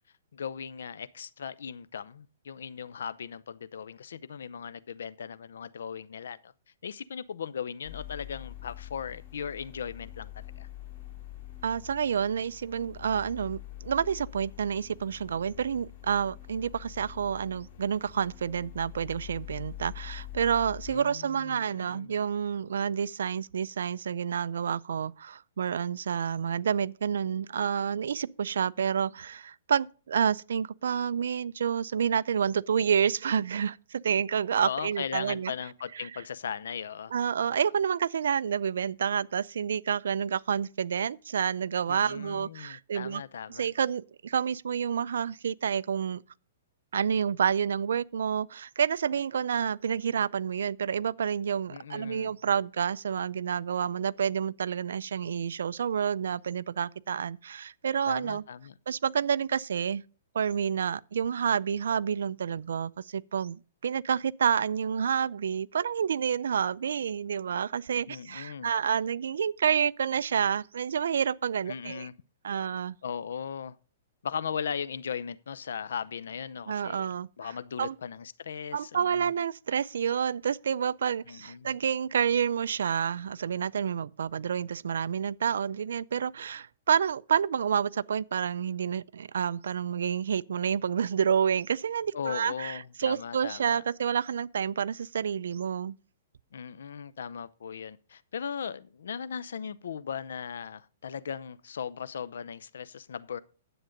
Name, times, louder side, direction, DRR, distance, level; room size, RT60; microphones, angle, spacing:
voice 1, 0.3-6.5 6.8-10.7 20.9-22.1 34.6-37.1 37.5-37.6 41.9-43.7 51.7-52.3 58.1-58.8 68.1-68.7 71.7-72.1 73.0-73.8 74.2-79.3 81.3-81.7 92.1-93.8 96.5-103.4, left 7 dB, 80° left, 0.6 m, -38 dB
sound 1, 7.8-20.9, left 13 dB, 40° left, 2.7 m, -45 dB
voice 2, 11.6-35.5 37.1-43.2 43.6-46.2 46.9-58.4 58.9-60.0 60.3-72.1 72.4-73.0 76.7-77.3 77.8-77.9 78.7-95.9, right 7 dB, 80° right, 0.4 m, -29 dB
10.0 x 7.8 x 5.1 m
hypercardioid pair, 160°, 0 cm